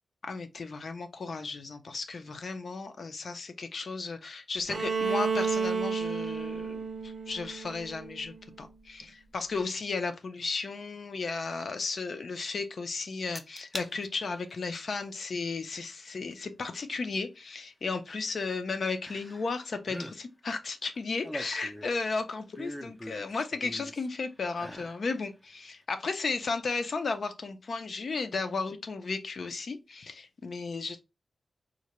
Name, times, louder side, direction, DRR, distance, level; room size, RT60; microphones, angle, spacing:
voice 1, 0.2-31.0, left 4 dB, 60° left, 0.5 m, -34 dB
Bowed string instrument, 4.7-8.5, right 5 dB, 45° right, 0.5 m, -32 dB
sound 1, 13.3-13.9 14.3-14.7 16.3-16.4 19.0-19.6 19.8-20.2 20.9-22.0 22.5-24.1 24.5-25.0 25.4-25.5, equal, 5° left, 0.5 m, -41 dB
3.8 x 2.2 x 3.0 m
wide cardioid pair, 125°, 0 cm